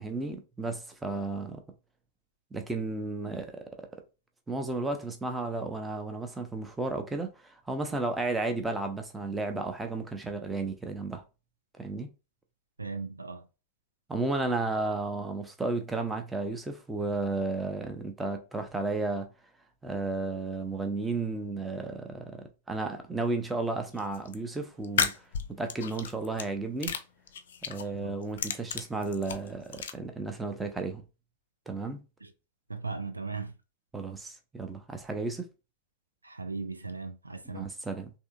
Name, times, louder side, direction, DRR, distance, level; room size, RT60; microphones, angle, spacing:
voice 1, 0.0-1.6 2.5-3.6 4.5-11.2 11.8-12.1 14.1-19.3 19.8-26.9 27.7-31.0 31.7-32.0 33.9-35.5 37.4-38.1, right 3 dB, 10° right, 0.6 m, -33 dB
voice 2, 12.8-13.4 28.0-28.2 32.2-32.3 32.7-33.5 36.2-37.7, right 4 dB, 80° right, 0.4 m, -37 dB
sound 1, 24.0-24.3 24.8-26.5 26.8-27.9 28.2-29.9, left 7 dB, 60° left, 0.4 m, -32 dB
3.4 x 2.7 x 2.4 m
figure-of-eight pair, 90°, 0 cm